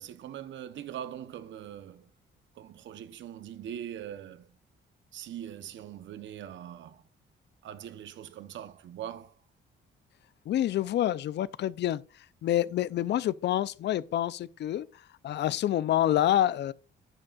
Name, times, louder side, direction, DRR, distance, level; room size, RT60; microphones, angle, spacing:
voice 1, 0.0-2.1 2.6-4.6 5.1-7.0 7.6-9.3, right 10 dB, 70° right, 0.8 m, -42 dB
voice 2, 10.5-12.0 12.4-14.9 15.2-16.7, left 12 dB, 60° left, 0.4 m, -27 dB
10.5 x 7.6 x 2.4 m
cardioid pair, 90°, 20 cm